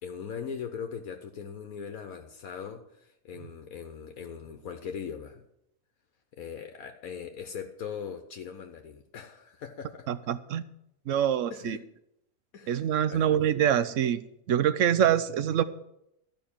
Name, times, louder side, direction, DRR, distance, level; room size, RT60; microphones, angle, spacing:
voice 1, 0.0-5.4 6.3-10.1 11.5-11.9 12.5-13.2, left 7 dB, 75° left, 1.3 m, -40 dB
voice 2, 10.1-10.6 11.1-11.8 12.7-14.2 14.5-15.6, right 9 dB, 65° right, 0.9 m, -25 dB
13.5 x 5.5 x 8.7 m
omnidirectional pair, 1.5 m